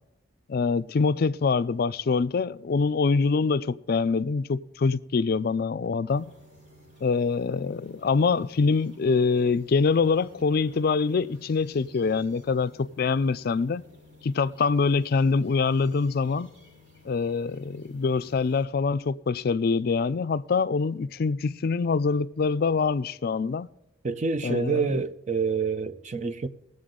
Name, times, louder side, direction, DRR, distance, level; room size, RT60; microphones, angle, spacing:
voice 1, 0.5-6.3 7.0-13.8 14.2-16.5 17.1-23.7 24.4-24.9, left 4 dB, 55° left, 0.4 m, -25 dB
sound 1, 6.1-18.6, left 1 dB, 75° right, 5.3 m, -54 dB
voice 2, 24.0-26.5, right 5 dB, 40° right, 0.6 m, -27 dB
20.5 x 7.8 x 3.8 m
head